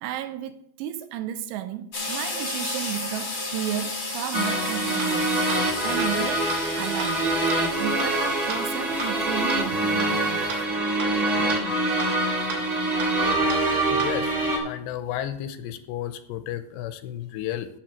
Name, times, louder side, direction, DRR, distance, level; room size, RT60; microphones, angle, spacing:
voice 1, 0.0-7.3 7.8-10.5, right 11 dB, 90° right, 2.8 m, -33 dB
sound 1, 1.9-10.6, left 2 dB, 55° left, 0.9 m, -34 dB
sound 2, 4.3-14.6, right 2 dB, 50° right, 0.8 m, -25 dB
sound 3, 5.0-5.1 5.5-5.6 6.0-6.1 6.5-6.6 7.0-7.1 7.5-7.6 8.0-8.1 8.5-8.6 9.0-9.1 9.5-9.6 10.0-10.1 10.5-10.6 11.0-11.1 11.5-11.6 12.0-12.1 12.5-12.6 13.0-13.1 13.5-13.6 14.0-14.1, right 4 dB, 65° right, 3.8 m, -32 dB
voice 2, 13.9-14.3 14.6-17.7, left 11 dB, 85° left, 2.7 m, -32 dB
16.0 x 6.2 x 3.1 m
omnidirectional pair, 5.0 m